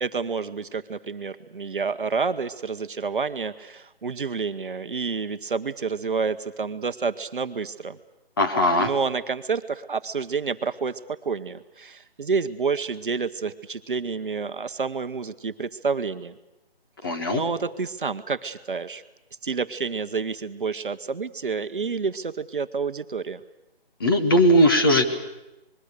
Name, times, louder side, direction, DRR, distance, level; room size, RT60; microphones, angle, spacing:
voice 1, 0.0-8.0 8.8-16.3 17.3-19.0 19.4-23.4, right 5 dB, 55° right, 11 dB, 1.0 m, -29 dB
voice 2, 8.4-8.9 17.0-17.4 24.0-25.1, equal, 20° left, 5 dB, 1.2 m, -19 dB
26.5 x 21.5 x 6.7 m, 0.95 s
figure-of-eight pair, 165°, 31 cm